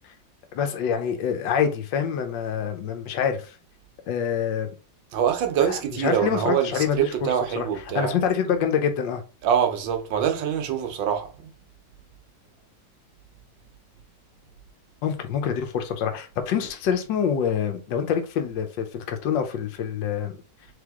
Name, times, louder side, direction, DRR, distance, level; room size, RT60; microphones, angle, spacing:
voice 1, 0.5-3.5 4.1-4.7 6.0-7.1 7.6-7.7 7.9-9.2 15.0-20.4, left 7 dB, 75° left, 1.4 m, -26 dB
voice 2, 5.1-8.2 9.4-11.5, right 9 dB, 80° right, 1.5 m, -24 dB
3.6 x 3.4 x 3.5 m
omnidirectional pair, 2.0 m